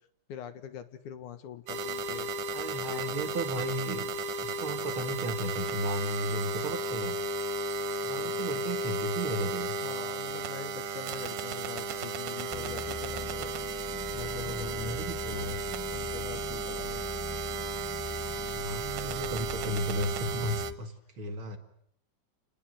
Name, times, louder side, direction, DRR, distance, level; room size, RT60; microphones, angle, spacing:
voice 1, 0.3-2.3 2.9-3.1 8.2-8.5 9.8-13.5 14.1-15.0 15.3-15.6 15.9-17.1 18.2-18.8, left 9 dB, 75° left, 10 dB, 2.9 m, -44 dB
sound 1, 1.7-20.7, right 2 dB, 80° right, 2.7 m, -34 dB
voice 2, 2.5-4.1 4.4-7.2 8.0-9.7 14.1-15.6 18.5-21.6, right 1 dB, 45° right, 6 dB, 2.2 m, -35 dB
sound 2, 12.5-20.7, equal, 5° right, 1.1 m, -43 dB
29.0 x 20.0 x 7.8 m, 0.70 s
omnidirectional pair, 3.6 m